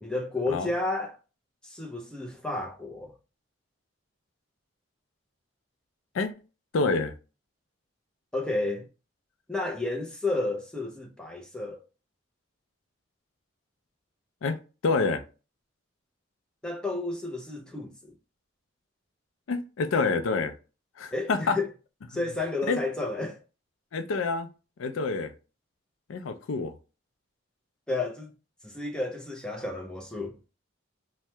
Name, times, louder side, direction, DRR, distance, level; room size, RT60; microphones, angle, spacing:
voice 1, 0.0-1.2 1.6-3.1 8.3-8.9 9.5-11.8 16.6-18.2 21.1-21.7 22.1-23.4 27.9-28.3 28.6-30.4, left 2 dB, 5° left, 0.4 m, -31 dB
voice 2, 6.7-7.1 14.4-15.2 19.5-20.5 21.0-21.6 22.7-22.8 23.9-24.5 24.8-25.3 26.1-26.7, left 4 dB, 85° left, 0.4 m, -27 dB
2.8 x 2.1 x 3.3 m
head